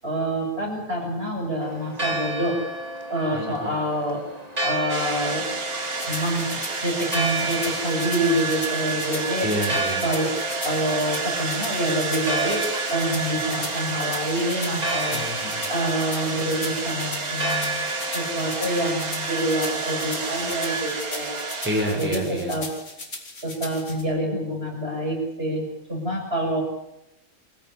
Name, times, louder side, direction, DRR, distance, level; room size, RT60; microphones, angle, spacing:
voice 1, 0.0-2.6 3.1-4.2 4.6-5.4 6.1-9.5 10.0-10.3 10.6-12.6 12.9-15.2 15.7-17.9 18.1-21.4 22.0-22.7 23.4-26.6, right 1 dB, 40° right, 0 dB, 7.3 m, -27 dB
Church bell, 1.6-21.0, right 1 dB, 25° right, 3.0 m, -33 dB
voice 2, 3.3-3.8 9.4-10.0 15.1-15.6 21.6-22.6, equal, 5° right, -1 dB, 5.8 m, -28 dB
sound 1, 4.9-22.4, right 4 dB, 80° right, 2.9 m, -30 dB
sound 2, 6.0-24.0, left 2 dB, 85° left, 4.7 m, -38 dB
24.5 x 14.5 x 9.7 m, 0.87 s
omnidirectional pair, 1.5 m